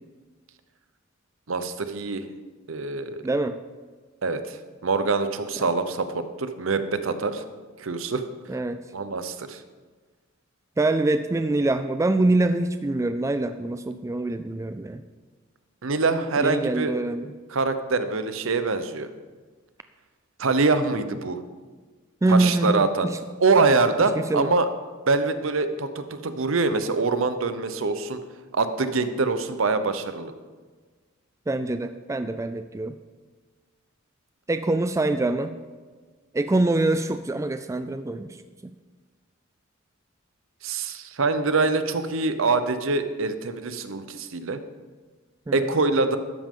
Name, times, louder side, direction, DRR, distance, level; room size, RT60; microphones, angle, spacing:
voice 1, 1.5-2.2 2.7-3.2 4.2-4.6 4.8-7.4 7.8-8.2 8.9-9.6 15.8-16.9 17.5-19.1 20.4-21.4 22.3-23.1 23.4-24.7 25.1-28.2 28.5-30.3 40.6-44.6 45.5-46.2, right 3 dB, 70° right, 10 dB, 0.8 m, -24 dB
voice 2, 3.2-3.6 8.5-8.8 10.8-15.0 16.4-17.3 22.2-23.2 24.2-24.5 31.5-33.0 34.5-35.6 36.3-38.4 38.6-38.7 45.5-45.8, right 2 dB, 15° right, 10 dB, 0.3 m, -24 dB
13.0 x 10.0 x 3.7 m, 1.4 s
head